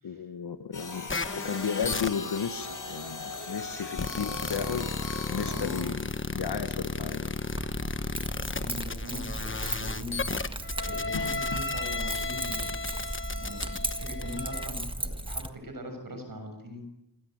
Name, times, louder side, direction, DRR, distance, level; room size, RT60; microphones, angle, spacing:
voice 1, 0.0-4.9 5.3-7.4 11.1-11.6, left 6 dB, 70° left, 9 dB, 1.3 m, -34 dB
sound 1, 0.7-5.8, left 3 dB, 45° left, 6.4 m, -39 dB
sound 2, 1.1-14.7, left 3 dB, 30° left, 1.3 m, -34 dB
voice 2, 5.5-6.0 8.4-10.5 10.8-12.7 13.3-16.9, equal, 50° right, 5 dB, 6.9 m, -41 dB
Keys jangling, 7.5-15.5, right 1 dB, 10° right, 1.6 m, -36 dB
27.5 x 23.0 x 7.9 m, 0.86 s
wide cardioid pair, 125°, 42 cm